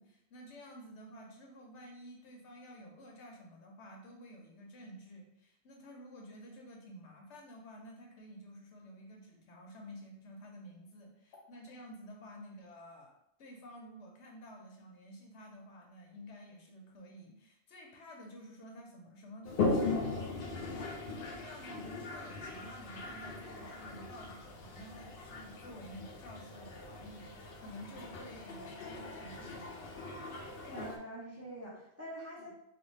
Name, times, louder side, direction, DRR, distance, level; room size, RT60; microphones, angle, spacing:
voice 1, 0.0-13.1 13.4-29.9 32.4-32.5, equal, 85° left, 0 dB, 1.1 m, -51 dB
Toilet flush, 19.5-31.0, left 3 dB, 60° left, 0.7 m, -39 dB
voice 2, 30.7-32.5, right 1 dB, 15° right, -6 dB, 0.6 m, -45 dB
3.3 x 2.3 x 3.2 m, 0.80 s
omnidirectional pair, 1.2 m